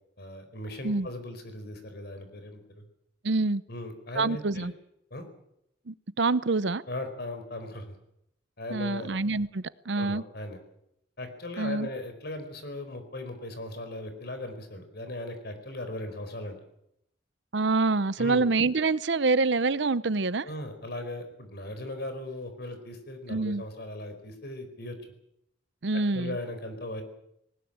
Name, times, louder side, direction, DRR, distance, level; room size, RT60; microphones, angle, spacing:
voice 1, 0.2-2.8 3.7-4.7 5.1-5.3 6.9-8.0 8.6-9.1 9.9-10.6 11.2-16.6 18.2-18.5 20.4-25.0 25.9-27.0, left 1 dB, 60° left, 8 dB, 4.7 m, -38 dB
voice 2, 3.2-3.6 4.1-4.7 5.9-6.8 8.7-10.2 11.6-11.9 17.5-20.5 23.3-23.6 25.8-26.4, right 3 dB, 65° right, 17 dB, 0.8 m, -26 dB
19.5 x 19.0 x 8.9 m, 0.78 s
head